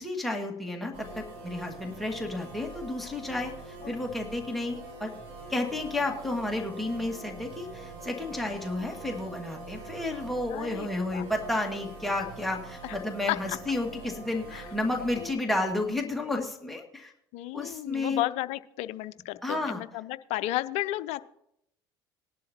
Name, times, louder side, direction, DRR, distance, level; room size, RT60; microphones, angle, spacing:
voice 1, 0.0-5.1 5.5-17.1 17.5-18.2 19.4-19.8, left 2 dB, ahead, 1 dB, 2.0 m, -32 dB
sound 1, 0.9-15.3, right 2 dB, 60° right, 5.0 m, -44 dB
voice 2, 10.5-11.2 12.8-13.0 13.3-13.6 14.5-14.7 15.2-15.3 17.3-21.2, left 16 dB, 60° left, 16 dB, 0.5 m, -33 dB
19.0 x 11.5 x 2.9 m, 0.76 s
hypercardioid pair, 65°, 13 cm